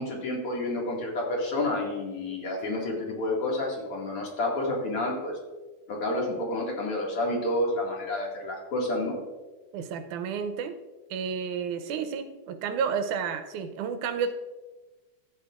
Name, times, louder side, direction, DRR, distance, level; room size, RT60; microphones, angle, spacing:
voice 1, 0.0-5.4 5.9-9.2, left 1 dB, 50° left, -2 dB, 2.7 m, -29 dB
voice 2, 9.7-10.7 11.1-14.3, right 6 dB, 85° right, 8 dB, 2.1 m, -31 dB
14.0 x 9.3 x 2.4 m, 1.3 s
omnidirectional pair, 3.6 m